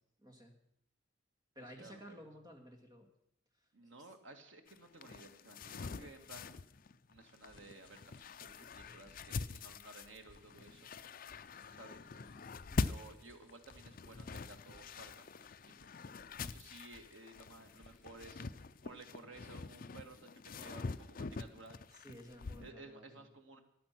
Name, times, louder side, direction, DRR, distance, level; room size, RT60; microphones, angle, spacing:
voice 1, 0.2-0.6 1.6-3.1 3.8-3.9 12.7-12.9 22.0-23.3, equal, 20° right, 3 dB, 2.3 m, -54 dB
voice 2, 1.7-2.3 3.7-6.6 7.1-10.9 11.7-12.1 12.8-15.9 16.4-18.5 18.8-21.8 22.6-23.6, right 2 dB, 90° right, 5 dB, 2.0 m, -56 dB
sound 1, 4.7-22.7, left 4 dB, 50° left, 0.5 m, -44 dB
sound 2, 7.4-19.6, left 1 dB, 30° left, 2.7 m, -67 dB
14.5 x 11.5 x 6.0 m, 0.77 s
head